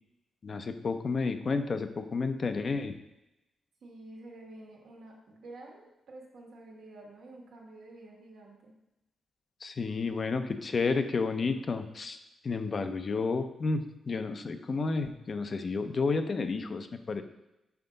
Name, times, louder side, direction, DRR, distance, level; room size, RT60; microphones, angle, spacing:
voice 1, 0.4-2.9 9.6-12.2 12.4-17.2, left 4 dB, 50° left, 8 dB, 0.6 m, -31 dB
voice 2, 3.8-8.7, right 2 dB, 80° right, -1 dB, 1.5 m, -49 dB
5.7 x 5.0 x 3.9 m, 0.92 s
cardioid pair, 60°, 0 cm